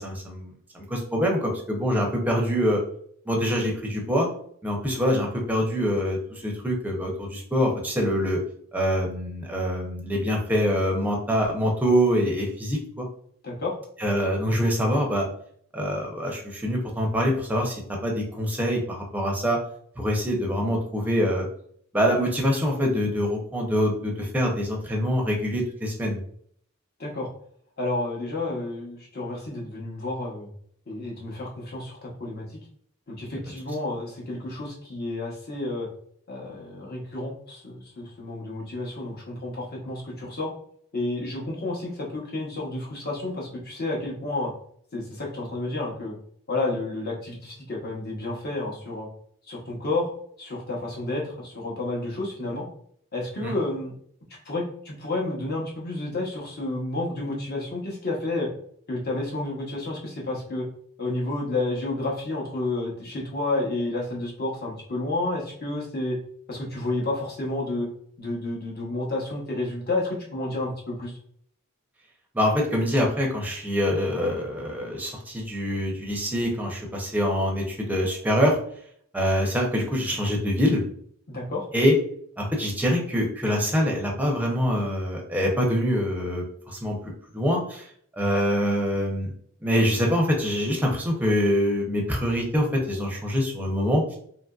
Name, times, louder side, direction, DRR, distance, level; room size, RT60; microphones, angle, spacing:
voice 1, 0.0-2.8 3.3-4.3 4.6-8.4 8.7-13.1 14.0-15.3 15.7-19.6 20.0-21.5 21.9-26.2 53.4-53.5 72.3-78.6 79.1-80.8 81.7-81.9 82.4-87.0 87.3-87.8 88.1-89.3 89.6-94.2, equal, 10° right, -1 dB, 0.5 m, -25 dB
voice 2, 13.4-13.8 27.0-27.3 27.8-30.5 30.9-32.4 33.1-35.9 36.3-40.5 40.9-44.5 44.9-46.1 46.5-49.1 49.5-50.1 50.4-52.6 53.1-53.9 54.4-58.5 58.9-60.6 61.0-66.2 66.5-67.9 68.2-71.1 81.3-81.6, left 2 dB, 50° left, -3 dB, 0.9 m, -30 dB
2.8 x 2.5 x 2.3 m, 0.63 s
head